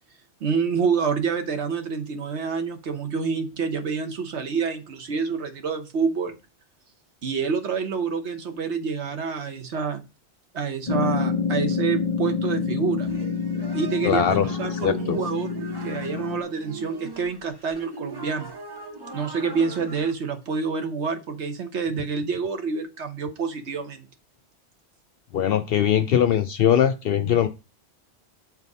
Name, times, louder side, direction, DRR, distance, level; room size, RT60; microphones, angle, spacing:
voice 1, 0.4-6.3 7.2-10.0 10.5-13.1 13.7-15.5 15.8-18.5 19.1-24.1, right 5 dB, 80° right, 7 dB, 1.3 m, -27 dB
sound 1, 10.9-16.4, left 5 dB, 35° left, 0.9 m, -27 dB
knocked on my wood, 13.1-20.1, right 3 dB, 25° right, 0.8 m, -40 dB
voice 2, 14.0-15.2 25.3-27.5, left 9 dB, 65° left, 10 dB, 0.7 m, -21 dB
7.3 x 4.1 x 5.3 m, 0.29 s
omnidirectional pair, 1.1 m